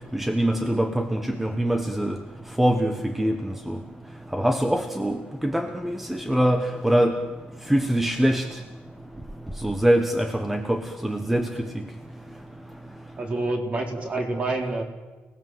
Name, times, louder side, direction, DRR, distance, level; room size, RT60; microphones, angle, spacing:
voice 1, 0.1-2.2 2.6-3.8 4.3-7.2 7.7-8.5 9.6-11.5 11.7-11.8, right 1 dB, 5° right, 6 dB, 1.2 m, -23 dB
voice 2, 13.2-14.8, right 2 dB, 30° right, 3 dB, 4.1 m, -27 dB
30.0 x 19.0 x 7.9 m, 1.3 s
cardioid pair, 150°, 4 cm